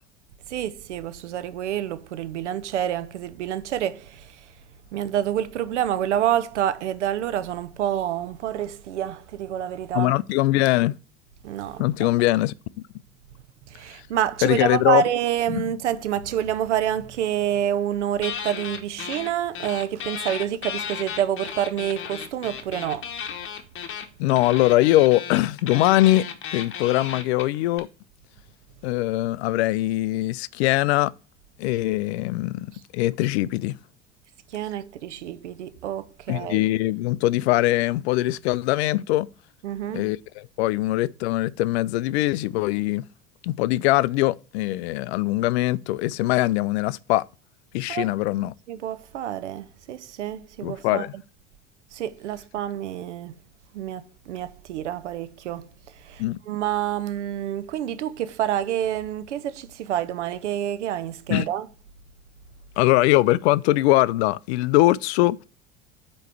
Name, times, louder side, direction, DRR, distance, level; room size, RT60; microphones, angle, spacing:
voice 1, 0.5-4.4 4.9-10.1 11.4-11.8 13.7-23.1 32.7-32.8 34.5-36.7 39.6-40.1 47.9-48.1 48.7-51.2 51.9-53.4 53.7-55.7 56.0-61.7, right 10 dB, 80° right, 0.7 m, -28 dB
voice 2, 9.9-11.0 11.8-12.5 14.4-15.0 15.5-15.6 24.2-26.3 26.5-27.9 28.8-31.1 31.6-32.7 32.9-33.8 36.3-39.3 39.9-43.0 43.4-47.2 47.7-48.5 50.6-51.1 56.2-56.4 61.3-61.5 62.8-65.4, left 17 dB, 65° left, 0.5 m, -22 dB
sound 1, 18.2-19.3 19.5-27.8, left 8 dB, 35° left, 1.1 m, -34 dB
8.2 x 3.1 x 6.0 m
hypercardioid pair, 75°, 35 cm